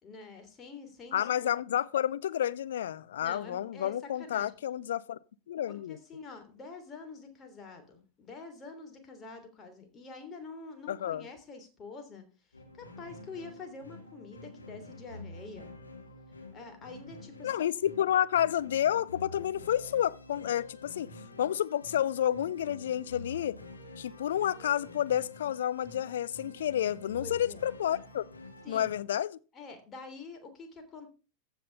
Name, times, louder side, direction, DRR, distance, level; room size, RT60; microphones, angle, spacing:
voice 1, 0.0-1.5 3.2-4.5 5.7-12.2 12.8-15.7 16.5-17.6 27.2-27.6 28.6-28.9 29.5-31.1, left 4 dB, 25° left, 3.2 m, -46 dB
voice 2, 1.1-5.2 5.5-6.0 10.9-11.3 17.4-21.1 21.4-23.6 24.0-28.2 28.7-29.4, left 10 dB, 60° left, 0.5 m, -30 dB
sound 1, 12.5-29.0, left 2 dB, 80° left, 2.4 m, -48 dB
15.0 x 6.2 x 5.4 m
figure-of-eight pair, 90°, 0 cm